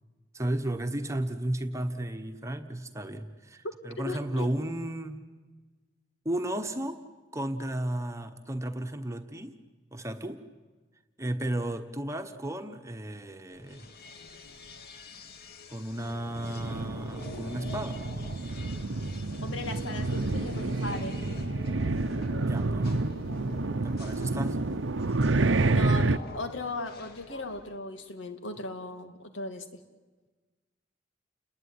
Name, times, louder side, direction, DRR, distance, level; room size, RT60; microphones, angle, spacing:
voice 1, 0.3-5.2 6.2-7.0 7.3-9.5 9.9-10.4 11.2-13.9 15.7-18.0 22.4-23.0 23.8-24.6, right 1 dB, 15° right, 6 dB, 1.2 m, -34 dB
voice 2, 4.0-4.6 19.4-21.2 25.7-29.7, left 2 dB, 90° left, 7 dB, 2.4 m, -37 dB
sound 1, 13.5-27.8, left 3 dB, 55° left, 2.0 m, -47 dB
sound 2, 16.3-26.2, right 2 dB, 90° right, 0.9 m, -29 dB
29.5 x 20.5 x 9.8 m, 1.3 s
head